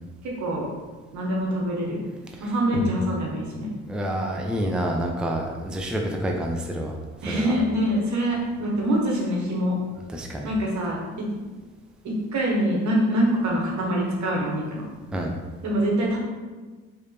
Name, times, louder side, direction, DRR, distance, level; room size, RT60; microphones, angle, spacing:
voice 1, 0.2-0.7 1.1-2.1 2.4-3.7 7.2-9.7 10.4-11.3 12.0-14.8 15.6-16.2, equal, 70° right, -2 dB, 1.3 m, -24 dB
voice 2, 3.9-6.9 7.3-7.5 10.1-10.5 15.1-15.3, right 1 dB, 5° right, 1 dB, 0.5 m, -28 dB
4.6 x 3.3 x 3.4 m, 1.3 s
cardioid pair, 90°, 30 cm